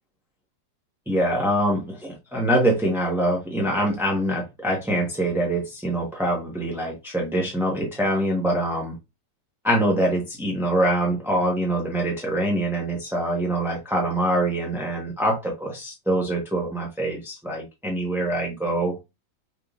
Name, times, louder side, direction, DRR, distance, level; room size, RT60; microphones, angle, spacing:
voice 1, 1.1-8.9 9.6-19.0, right 1 dB, ahead, 0.6 m, -24 dB
5.9 x 3.5 x 2.4 m
omnidirectional pair, 1.9 m